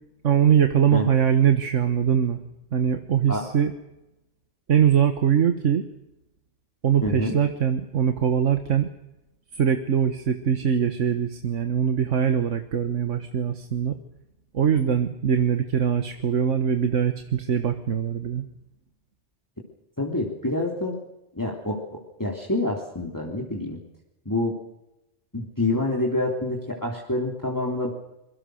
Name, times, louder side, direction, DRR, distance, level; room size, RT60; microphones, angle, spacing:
voice 1, 0.2-2.4 2.7-3.7 4.7-5.8 6.8-8.9 9.5-14.0 14.5-18.4, right 8 dB, 80° right, 7 dB, 1.7 m, -22 dB
voice 2, 7.0-7.4 20.0-20.9 21.3-23.8 24.2-24.5 25.3-27.9, left 1 dB, 15° left, -1 dB, 3.4 m, -27 dB
26.0 x 23.0 x 6.5 m, 0.92 s
omnidirectional pair, 1.2 m